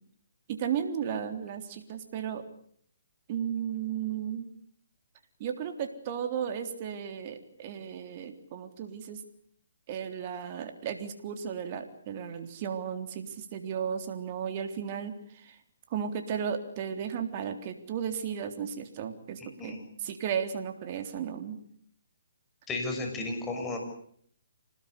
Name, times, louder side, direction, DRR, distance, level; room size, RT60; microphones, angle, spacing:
voice 1, 0.5-2.4 3.3-4.5 5.4-9.2 9.9-15.6 15.9-21.6, right 8 dB, 35° right, 6 dB, 3.5 m, -34 dB
voice 2, 19.4-19.8 22.7-23.8, left 2 dB, 10° left, 3 dB, 6.6 m, -34 dB
26.5 x 19.5 x 8.3 m, 0.64 s
hypercardioid pair, 150°, 0 cm